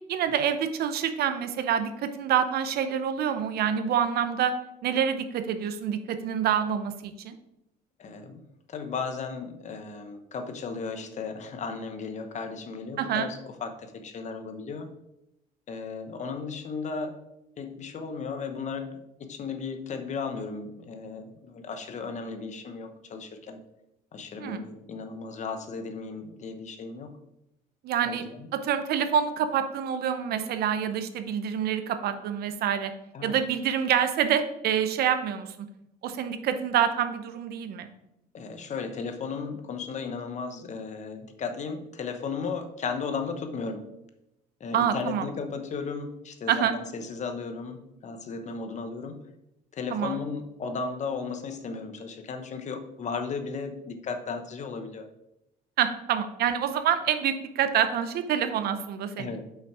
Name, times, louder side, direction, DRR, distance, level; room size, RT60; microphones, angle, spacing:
voice 1, 0.1-4.5 4.8-7.3 13.0-13.3 24.4-24.6 27.8-28.2 28.5-32.9 33.2-35.7 36.0-37.9 44.7-45.3 46.5-46.7 49.9-50.2 55.8-59.4, right 8 dB, 70° right, 10 dB, 0.7 m, -27 dB
voice 2, 8.0-8.4 8.7-14.9 15.7-17.2 17.6-23.6 24.1-27.1 28.0-28.5 33.1-33.4 38.3-43.9 44.6-49.2 49.7-55.0 59.2-59.4, left 5 dB, 45° left, 7 dB, 1.0 m, -35 dB
6.1 x 5.7 x 4.8 m, 0.87 s
cardioid pair, 110°, 17 cm